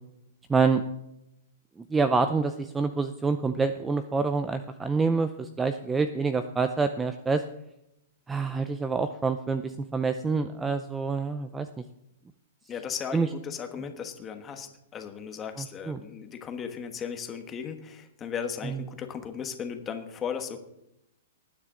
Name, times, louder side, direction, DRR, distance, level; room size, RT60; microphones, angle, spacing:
voice 1, 0.5-0.8 1.8-7.4 8.3-11.7 13.1-13.3 15.6-16.0 18.6-18.8, right 4 dB, 10° right, 10 dB, 0.4 m, -27 dB
voice 2, 12.7-20.6, left 7 dB, 15° left, 6 dB, 1.3 m, -36 dB
19.0 x 9.6 x 3.8 m, 0.85 s
hypercardioid pair, 160°, 0 cm